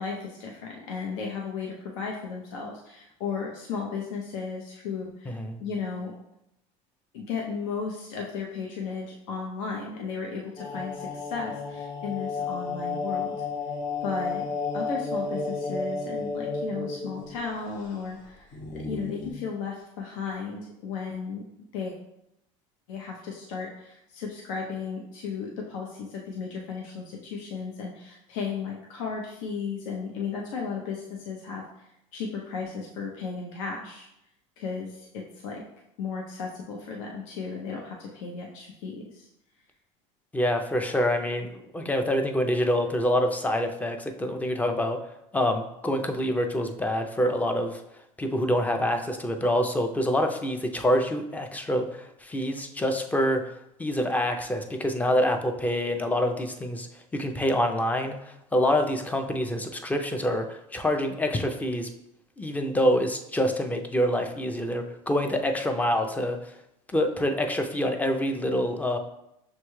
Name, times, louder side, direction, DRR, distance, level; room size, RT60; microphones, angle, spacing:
voice 1, 0.0-6.1 7.1-13.3 14.0-14.4 14.7-21.4 21.7-21.9 22.9-34.1 34.6-35.6 36.0-39.3, left 5 dB, 90° left, 0 dB, 0.6 m, -35 dB
voice 2, 5.3-5.6 40.3-41.5 41.7-45.0 45.3-47.8 48.2-53.5 53.8-56.9 57.1-61.9 62.4-66.5 66.9-69.0, equal, 10° left, 5 dB, 0.4 m, -26 dB
sound 1, 10.6-17.5 17.8-17.9 18.5-19.3, left 4 dB, 50° left, 0.8 m, -32 dB
6.4 x 2.2 x 3.1 m, 0.83 s
supercardioid pair, 120°, 16 cm